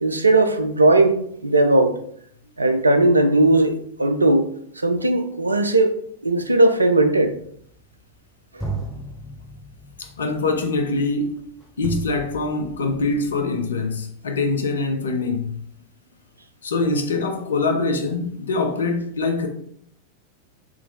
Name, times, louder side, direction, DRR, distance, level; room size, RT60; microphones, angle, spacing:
voice 1, 0.0-2.0 2.6-4.5 4.8-6.0 6.2-7.3 8.5-8.6, right 2 dB, 80° right, 0.3 m, -18 dB
sound 1, 7.3-8.2 8.6-13.5, right 3 dB, 5° left, 0.6 m, -35 dB
voice 2, 10.0-11.5 11.8-15.7 16.6-19.5, left 3 dB, 70° left, 0.5 m, -24 dB
3.6 x 2.9 x 2.5 m
figure-of-eight pair, 90°, 0 cm